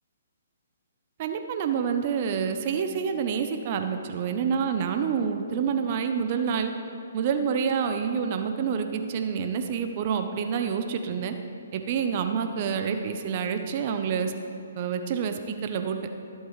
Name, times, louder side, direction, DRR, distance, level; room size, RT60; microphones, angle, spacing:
voice 1, 1.2-6.7 7.1-11.4 11.7-14.3 14.8-16.0, right 6 dB, 40° right, 7 dB, 0.7 m, -27 dB
19.5 x 8.1 x 3.2 m, 2.6 s
hypercardioid pair, 145°, 0 cm